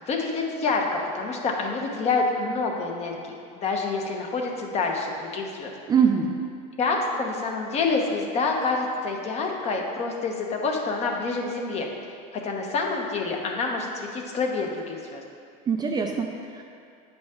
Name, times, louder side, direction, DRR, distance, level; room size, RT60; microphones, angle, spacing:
voice 1, 0.1-5.7 6.8-11.9 12.4-15.2, left 4 dB, 35° left, 1 dB, 0.9 m, -27 dB
voice 2, 5.9-6.3 15.7-16.6, right 6 dB, 20° right, 2 dB, 0.4 m, -23 dB
8.2 x 5.2 x 3.7 m, 2.3 s
supercardioid pair, 120°, 19 cm